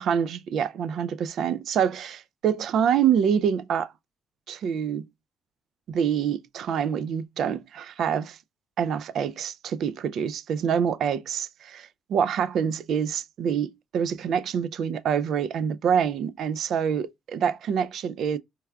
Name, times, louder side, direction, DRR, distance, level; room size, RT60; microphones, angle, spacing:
voice 1, 0.0-3.9 4.5-5.1 5.9-8.4 8.8-18.4, right 8 dB, 70° right, 0.3 m, -26 dB
4.5 x 2.2 x 2.3 m
cardioid pair, 90°, 0 cm